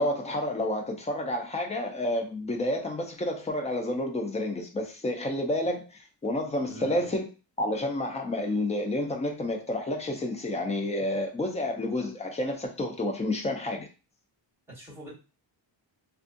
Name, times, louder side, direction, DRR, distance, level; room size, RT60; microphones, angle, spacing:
voice 1, 0.0-5.9 6.2-7.3 7.6-13.9, left 1 dB, 15° left, 0.4 m, -29 dB
voice 2, 6.6-7.1 14.7-15.1, right 1 dB, 5° right, 1.5 m, -44 dB
2.6 x 2.3 x 2.5 m
wide cardioid pair, 165°, 45 cm